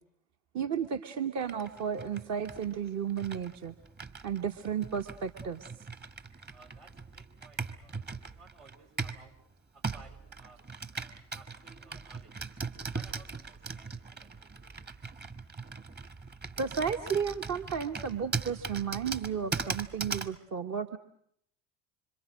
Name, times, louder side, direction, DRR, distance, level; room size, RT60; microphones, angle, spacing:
voice 1, 0.5-3.8 4.2-5.7 16.6-21.0, right 7 dB, 45° right, 6 dB, 1.1 m, -33 dB
Computer keyboard, 1.4-9.3 9.8-20.4, right 4 dB, 25° right, 1.4 m, -40 dB
voice 2, 6.5-9.3 9.7-12.3 12.9-14.8, right 3 dB, 75° right, 0 dB, 4.8 m, -58 dB
26.5 x 25.5 x 6.2 m, 0.70 s
hypercardioid pair, 70°, 38 cm